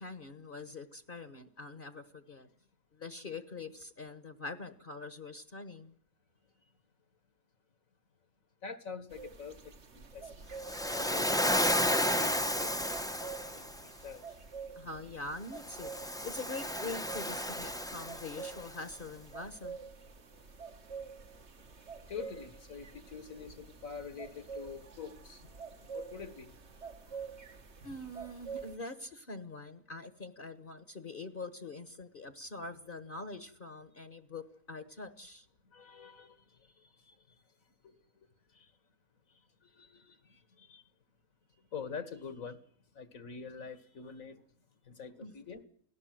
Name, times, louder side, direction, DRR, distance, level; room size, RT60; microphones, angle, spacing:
voice 1, 0.0-2.5 2.9-6.0 14.7-19.8 27.8-35.5 45.2-45.3, left 3 dB, 40° left, 1.4 m, -44 dB
voice 2, 8.6-10.4 10.8-11.5 11.8-14.4 22.1-26.5 27.1-27.2 35.6-37.4 37.8-38.3 38.5-38.7 39.3-40.8 41.7-42.6 42.9-44.4 44.8-45.6, left 6 dB, 70° left, 2.2 m, -46 dB
sound 1, 9.1-28.8, right 5 dB, 50° right, 1.8 m, -48 dB
Waves surf, 10.6-13.8 15.6-18.7, left 1 dB, 5° left, 0.9 m, -32 dB
29.0 x 18.0 x 7.8 m
omnidirectional pair, 1.5 m